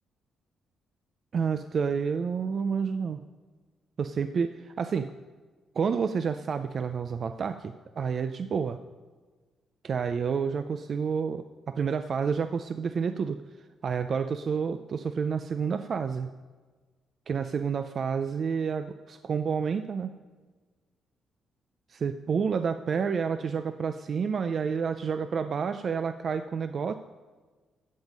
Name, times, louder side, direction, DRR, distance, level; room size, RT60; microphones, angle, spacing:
voice 1, 1.3-3.2 4.0-5.1 5.8-8.8 9.8-13.4 13.8-16.3 17.3-20.1 21.9-26.9, right 6 dB, 45° right, 10 dB, 0.4 m, -29 dB
14.0 x 7.3 x 5.3 m, 1.4 s
cardioid pair, 120°, 0 cm